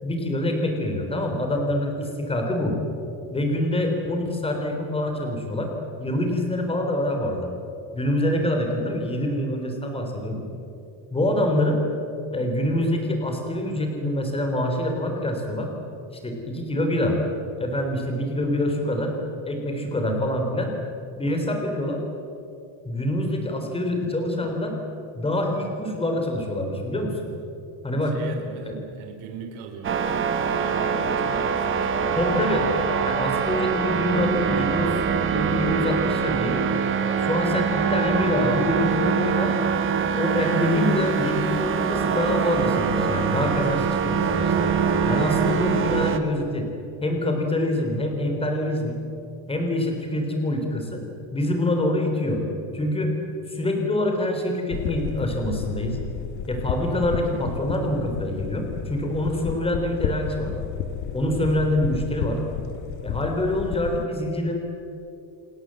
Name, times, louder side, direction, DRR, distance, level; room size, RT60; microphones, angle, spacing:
voice 1, 0.0-2.8 3.3-5.7 6.0-7.5 7.9-10.4 11.1-11.8 12.3-15.7 16.2-17.2 17.6-19.1 19.4-20.7 21.2-22.0 22.9-24.7 25.1-27.3 27.8-28.2 28.7-28.8 32.2-32.7 33.0-35.0 35.3-36.7 37.2-39.6 40.2-44.7 45.1-46.7 47.0-49.0 49.5-51.0 51.3-52.4 52.7-53.1 53.5-56.0 56.5-60.5 61.1-62.4 63.0-64.6, left 1 dB, 10° left, 3 dB, 3.8 m, -25 dB
voice 2, 27.9-32.4 36.9-37.3, right 5 dB, 80° right, 3 dB, 3.7 m, -39 dB
sound 1, 29.8-46.2, right 6 dB, 25° right, 1.3 m, -24 dB
sound 2, 54.7-64.0, left 8 dB, 75° left, 1.9 m, -32 dB
29.0 x 19.5 x 7.8 m, 2.8 s
cardioid pair, 170°, 47 cm